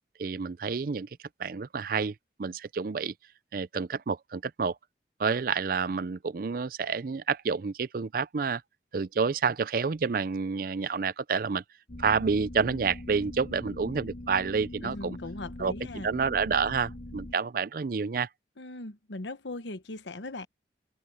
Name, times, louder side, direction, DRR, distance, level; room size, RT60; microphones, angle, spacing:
voice 1, 0.2-1.1 1.4-3.1 3.5-4.8 5.2-8.6 8.9-11.6 12.0-15.2 15.6-18.3, right 5 dB, 50° right, 0.4 m, -29 dB
sound 1, 11.9-17.3, left 1 dB, 60° left, 1.8 m, -42 dB
voice 2, 14.8-16.1 18.6-20.5, left 2 dB, 85° left, 1.2 m, -39 dB
open air
head